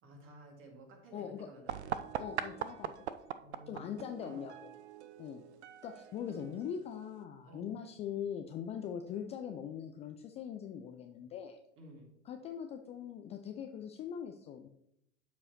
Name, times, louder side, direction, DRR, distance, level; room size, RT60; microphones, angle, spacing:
voice 1, 0.0-2.1 3.4-4.5 7.4-7.8 11.8-12.1, right 1 dB, 35° right, 2 dB, 2.1 m, -53 dB
voice 2, 1.1-1.5 2.2-3.1 3.7-4.5 5.2-5.4 5.8-11.6 12.3-14.7, left 8 dB, 20° left, 5 dB, 0.3 m, -41 dB
sound 1, 1.7-7.2, right 9 dB, 70° right, 0.5 m, -42 dB
12.5 x 4.7 x 2.9 m, 0.80 s
figure-of-eight pair, 80°, 35 cm